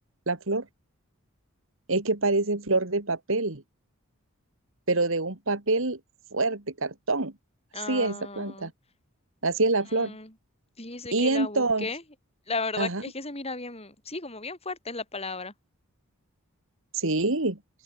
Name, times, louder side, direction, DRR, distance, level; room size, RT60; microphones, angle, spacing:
voice 1, 0.3-0.7 1.9-3.6 4.9-6.0 6.3-7.3 7.9-8.7 9.4-10.1 11.1-11.9 12.8-13.0 16.9-17.6, right 2 dB, 60° right, 2.1 m, -26 dB
voice 2, 7.7-8.7 9.9-10.3 10.8-12.0 12.5-15.5, left 3 dB, 25° left, 5.4 m, -35 dB
open air
head